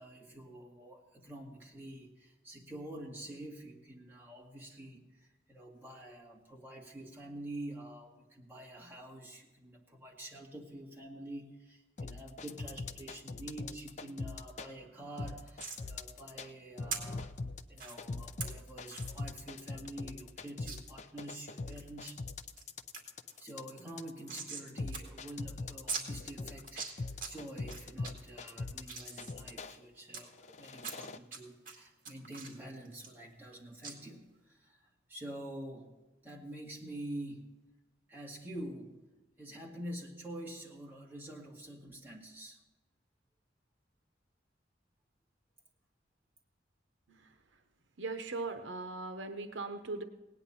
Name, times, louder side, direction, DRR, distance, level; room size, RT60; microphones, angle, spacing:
voice 1, 0.0-17.3 17.7-22.2 23.3-35.9 36.2-37.6 38.1-39.0 39.4-42.6, right 1 dB, 10° right, -3 dB, 2.1 m, -47 dB
sound 1, 12.0-14.7 15.2-16.5 16.8-29.8 30.3-31.2, left 3 dB, 40° left, 0.5 m, -42 dB
sound 2, 15.6-15.8 16.9-17.0 17.8-17.9 18.4-18.5 18.9-19.1 19.5-19.6 19.8-19.9 20.7-20.8 21.3-21.8 22.3-22.6 22.9-23.0 23.3-24.7 24.9-25.0 25.3-25.4 25.9-26.0 26.6-27.3 27.7-28.1 28.6-30.2 30.8-31.4 31.6-33.5 33.8-33.9, right 5 dB, 50° right, 2.2 m, -41 dB
voice 2, 48.0-50.0, right 3 dB, 80° right, 7 dB, 0.9 m, -39 dB
18.0 x 9.7 x 4.2 m, 1.1 s
head